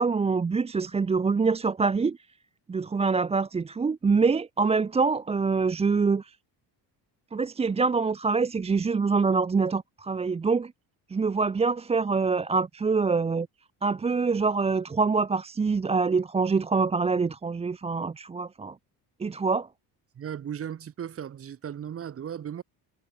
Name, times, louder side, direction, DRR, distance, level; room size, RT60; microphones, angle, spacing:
voice 1, 0.0-2.2 2.7-6.4 7.3-10.7 11.1-13.5 13.8-18.8 19.2-19.7, right 4 dB, 15° right, 0.8 m, -25 dB
voice 2, 20.1-22.6, right 9 dB, 35° right, 3.2 m, -36 dB
cardioid pair, 170°, 39 cm